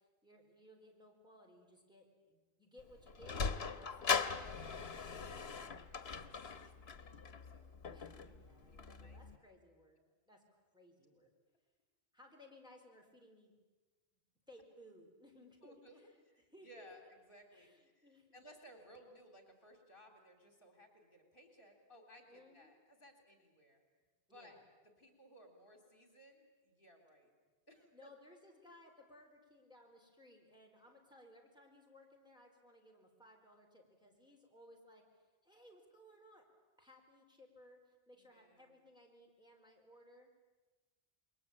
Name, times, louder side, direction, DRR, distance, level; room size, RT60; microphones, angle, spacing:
voice 1, 0.0-4.8 7.8-10.0 10.3-11.3 12.1-13.6 14.5-16.2 16.5-16.9 17.5-18.4 22.3-22.7 24.3-24.6 27.9-36.4 36.8-40.4, left 1 dB, 5° right, -1 dB, 4.6 m, -62 dB
Sliding door, 2.8-9.4, left 5 dB, 80° left, 1.4 m, -40 dB
voice 2, 5.2-8.1 8.6-9.2 15.6-16.0 16.2-23.8 24.3-24.6 24.8-27.3 27.7-28.1 38.1-38.8, equal, 55° left, 4 dB, 4.1 m, -61 dB
28.0 x 22.5 x 8.8 m, 1.2 s
omnidirectional pair, 1.1 m